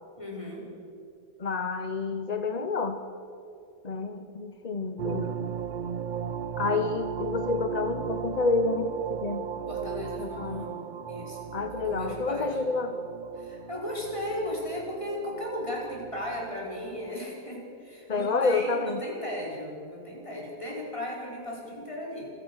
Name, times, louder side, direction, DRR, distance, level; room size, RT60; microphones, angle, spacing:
voice 1, 0.2-0.7 9.7-12.6 13.3-22.3, left 1 dB, 15° left, -3 dB, 5.3 m, -36 dB
voice 2, 1.4-3.0 3.8-5.4 6.6-9.4 10.2-10.7 11.5-12.9 18.1-19.0, left 3 dB, 35° left, 8 dB, 0.7 m, -29 dB
sound 1, 5.0-17.1, right 8 dB, 90° right, 0.4 m, -36 dB
27.0 x 16.0 x 6.4 m, 2.7 s
omnidirectional pair, 1.8 m